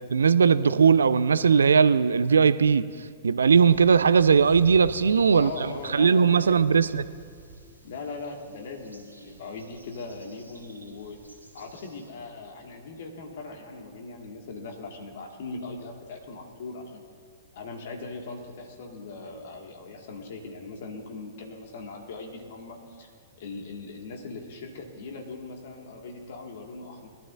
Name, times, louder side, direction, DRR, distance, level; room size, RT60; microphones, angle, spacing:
voice 1, 0.0-2.9 3.2-7.0, right 6 dB, 75° right, 15 dB, 0.4 m, -19 dB
sound 1, 3.5-12.1, right 2 dB, 90° right, 2.1 m, -48 dB
voice 2, 5.3-6.9 7.8-11.2 11.5-17.0 17.5-23.1 23.4-27.1, left 3 dB, 55° left, 2 dB, 2.0 m, -40 dB
21.5 x 12.0 x 2.6 m, 2.2 s
figure-of-eight pair, 105°, 0 cm